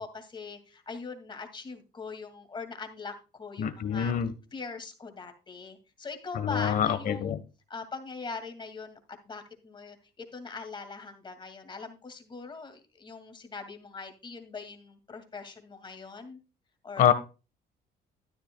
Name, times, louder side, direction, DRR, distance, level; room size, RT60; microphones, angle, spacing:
voice 1, 0.0-4.1 4.5-7.3 7.7-9.0 9.3-16.4 16.8-17.1, left 4 dB, 30° left, 7 dB, 2.2 m, -41 dB
voice 2, 3.6-4.3 6.3-7.4 17.0-17.1, left 9 dB, 55° left, 13 dB, 1.3 m, -25 dB
13.0 x 10.5 x 2.3 m, 0.31 s
cardioid pair, 110°, 17 cm